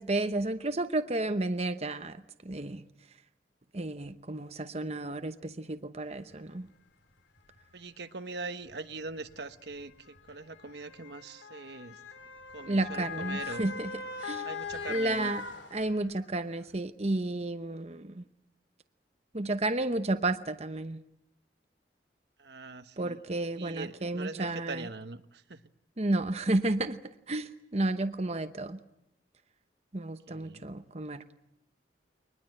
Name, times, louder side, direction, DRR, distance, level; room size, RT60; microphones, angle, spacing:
voice 1, 0.0-2.2 2.4-2.8 3.7-6.7 12.7-13.9 14.2-14.5 14.9-15.4 15.7-18.2 19.3-21.0 23.0-24.9 26.0-27.0 27.3-28.8 29.9-31.2, right 2 dB, 35° right, 9 dB, 0.9 m, -32 dB
Motor vehicle (road) / Siren, 6.3-6.4 7.4-7.6 8.7-16.3 16.7-16.8, left 5 dB, 80° left, 2.8 m, -41 dB
voice 2, 7.7-12.0 12.5-13.6 14.4-15.3 22.4-23.2 23.5-25.6 30.3-30.6, right 3 dB, 65° right, 10 dB, 1.1 m, -42 dB
23.5 x 20.5 x 9.0 m, 0.81 s
head